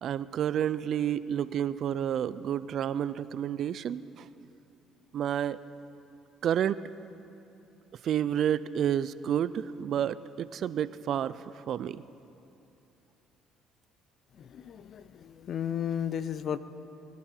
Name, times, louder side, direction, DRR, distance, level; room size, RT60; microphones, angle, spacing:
voice 1, 0.0-4.3 5.1-5.6 6.4-6.8 8.0-12.0, right 9 dB, 60° right, 16 dB, 0.4 m, -30 dB
voice 2, 14.4-16.6, left 9 dB, 55° left, 14 dB, 0.6 m, -34 dB
22.0 x 11.5 x 4.5 m, 2.8 s
supercardioid pair, 75°, 0 cm